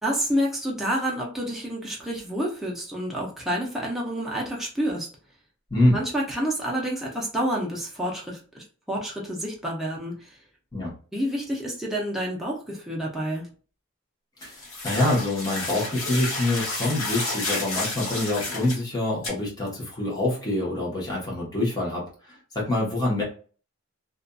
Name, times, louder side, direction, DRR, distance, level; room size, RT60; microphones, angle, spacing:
voice 1, 0.0-5.1 5.9-10.4 11.1-13.5, equal, ahead, -4 dB, 0.6 m, -29 dB
sound 1, 14.4-18.8 19.2-19.3, left 2 dB, 75° left, 1.3 m, -31 dB
voice 2, 14.4-22.0 22.3-23.2, left 1 dB, 20° left, -4 dB, 1.0 m, -25 dB
2.6 x 2.5 x 2.2 m, 0.39 s
head